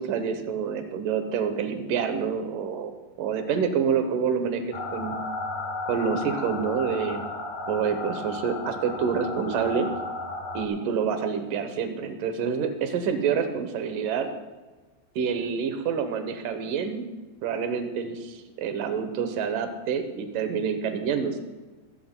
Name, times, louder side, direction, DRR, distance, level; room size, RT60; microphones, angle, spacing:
voice 1, 0.0-2.9 3.2-5.2 5.9-7.2 7.7-9.9 10.5-14.3 15.2-17.0 17.4-21.4, right 6 dB, 85° right, 7 dB, 1.8 m, -27 dB
sound 1, 4.7-10.7, left 2 dB, 70° left, 1.5 m, -34 dB
24.5 x 13.5 x 2.2 m, 1.2 s
omnidirectional pair, 5.2 m